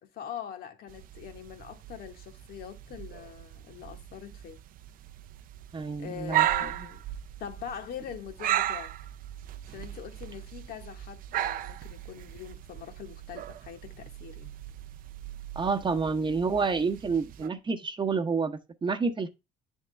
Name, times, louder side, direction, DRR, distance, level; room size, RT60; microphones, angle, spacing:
voice 1, 0.0-4.6 6.0-7.0 7.4-8.9 9.7-14.5, left 9 dB, 65° left, 1.2 m, -43 dB
sound 1, 0.9-17.5, right 13 dB, 55° right, 0.4 m, -36 dB
voice 2, 5.7-6.5 15.5-19.3, right 4 dB, 30° right, 0.9 m, -29 dB
9.6 x 3.7 x 3.2 m
cardioid pair, 110°, 17 cm